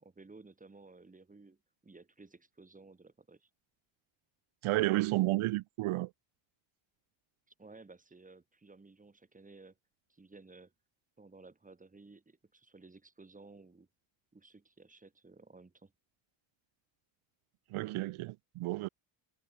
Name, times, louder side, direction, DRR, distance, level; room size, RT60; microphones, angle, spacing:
voice 1, 0.0-3.5 7.5-9.8 10.1-10.7 11.2-13.9 14.3-15.9, right 3 dB, 15° right, 5.1 m, -56 dB
voice 2, 4.6-6.1 17.7-18.9, right 19 dB, 85° right, 0.9 m, -31 dB
cardioid pair, 145°, 48 cm